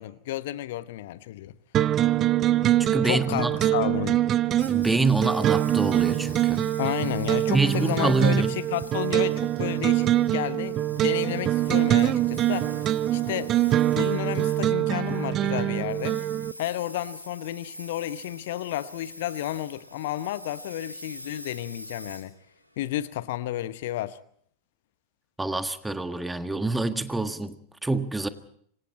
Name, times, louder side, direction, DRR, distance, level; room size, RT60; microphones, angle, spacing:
voice 1, 0.0-1.6 3.0-4.2 6.8-10.1 10.3-12.7 13.1-13.7 13.9-16.2 16.6-22.3 22.8-24.2, left 14 dB, 55° left, 0.9 m, -31 dB
sound 1, 1.7-16.5, right 13 dB, 30° right, 0.8 m, -24 dB
voice 2, 2.9-3.5 4.7-6.7 7.5-8.6 25.4-28.3, right 3 dB, 5° right, 1.7 m, -26 dB
Engine, 4.6-23.0, equal, 90° left, 3.8 m, -45 dB
27.5 x 25.0 x 4.4 m
figure-of-eight pair, 90°, 0 cm